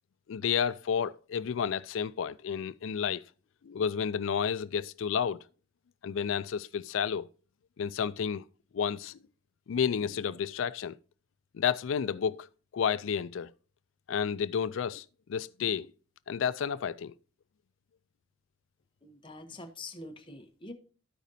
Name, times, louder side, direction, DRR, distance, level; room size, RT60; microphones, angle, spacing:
voice 1, 0.3-3.2 3.6-5.4 6.0-7.3 7.8-8.4 8.7-9.2 9.7-11.0 11.5-12.5 12.7-13.5 14.1-15.9 16.3-17.1, left 7 dB, 80° left, 0.4 m, -31 dB
voice 2, 19.0-20.7, left 2 dB, 25° left, 1.0 m, -45 dB
14.0 x 5.1 x 2.7 m
head